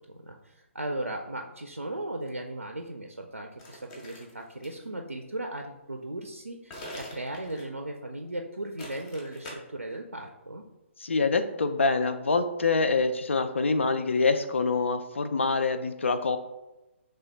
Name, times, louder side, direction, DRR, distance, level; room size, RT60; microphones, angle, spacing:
voice 1, 0.1-10.6, right 1 dB, 85° right, 3 dB, 0.4 m, -37 dB
sound 1, 3.6-4.9 6.7-7.8 8.8-9.5, left 1 dB, 25° left, 0.8 m, -44 dB
voice 2, 11.0-16.4, left 4 dB, 65° left, 9 dB, 0.4 m, -25 dB
5.1 x 3.3 x 2.2 m, 1.0 s
figure-of-eight pair, 135°, 7 cm